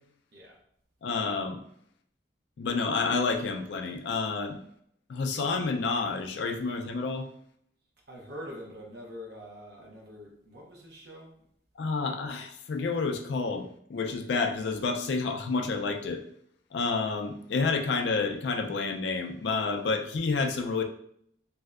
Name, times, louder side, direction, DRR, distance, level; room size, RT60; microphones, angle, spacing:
voice 1, 1.0-1.6 2.6-4.6 5.1-7.3 11.8-16.2 16.7-20.8, left 4 dB, 65° left, 5 dB, 0.4 m, -29 dB
voice 2, 8.1-11.4, equal, 60° right, -1 dB, 0.8 m, -44 dB
3.2 x 2.7 x 2.3 m, 0.71 s
head